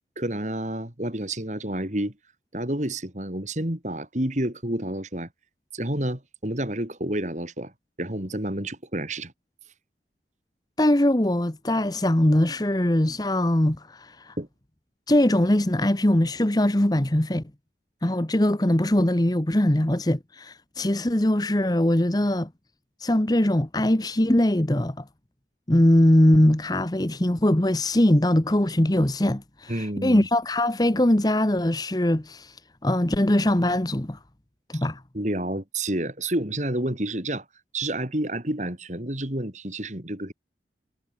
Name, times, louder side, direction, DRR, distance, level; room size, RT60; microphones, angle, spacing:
voice 1, 0.2-2.1 2.5-5.3 5.7-7.7 8.0-9.3 14.4-14.5 29.7-30.3 34.7-34.9 35.1-37.4 37.7-40.3, right 1 dB, 40° right, 3.4 m, -29 dB
voice 2, 10.8-14.4 15.1-17.4 18.0-22.5 23.0-25.0 25.7-32.6 32.8-34.2 34.7-35.0, left 1 dB, 20° left, 1.1 m, -21 dB
head